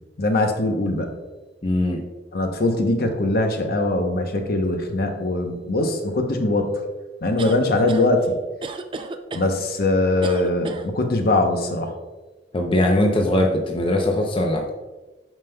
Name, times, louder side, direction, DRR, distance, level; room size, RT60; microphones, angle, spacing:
voice 1, 0.2-1.1 2.3-6.7 7.2-8.4 9.3-11.9, left 2 dB, 55° left, 4 dB, 0.8 m, -21 dB
voice 2, 1.6-2.0 12.5-14.7, left 1 dB, 30° left, 1 dB, 0.6 m, -20 dB
sound 1, 7.4-8.1 8.6-9.5 10.2-10.9, right 3 dB, 30° right, 0.4 m, -32 dB
8.9 x 5.4 x 2.2 m, 1.2 s
head